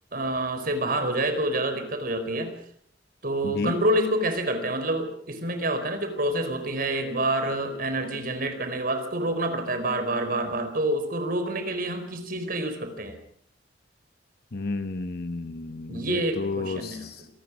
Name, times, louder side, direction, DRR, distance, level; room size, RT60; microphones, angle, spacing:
voice 1, 0.1-2.5 3.2-13.2 15.9-17.1, right 1 dB, 50° right, 8 dB, 4.5 m, -27 dB
voice 2, 3.4-3.8 14.5-17.3, left 3 dB, 55° left, 9 dB, 1.0 m, -32 dB
26.5 x 19.0 x 6.3 m, 0.65 s
head